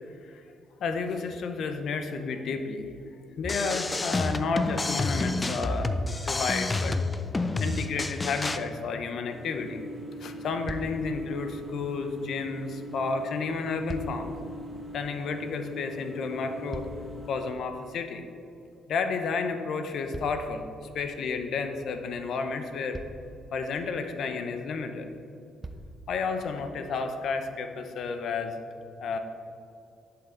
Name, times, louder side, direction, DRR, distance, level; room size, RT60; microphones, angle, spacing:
voice 1, 0.8-2.9 3.4-5.9 6.2-7.0 7.6-9.8 10.2-14.3 14.9-16.9 17.3-18.2 18.9-20.7 20.9-23.0 23.5-25.1 26.1-28.6 29.0-29.2, left 4 dB, 70° left, 7 dB, 0.7 m, -31 dB
sound 1, 3.4-8.6, left 2 dB, 25° left, 0.4 m, -29 dB
sound 2, 9.3-17.5, equal, ahead, 2.1 m, -42 dB
sound 3, 10.7-11.2 13.5-14.4 16.2-17.3 20.1-21.1 22.3-22.4 22.9-23.4 24.8-24.9 25.6-26.0 26.8-26.9, right 2 dB, 25° right, 0.6 m, -41 dB
11.0 x 5.7 x 3.9 m, 2.6 s
cardioid pair, 90°, 0 cm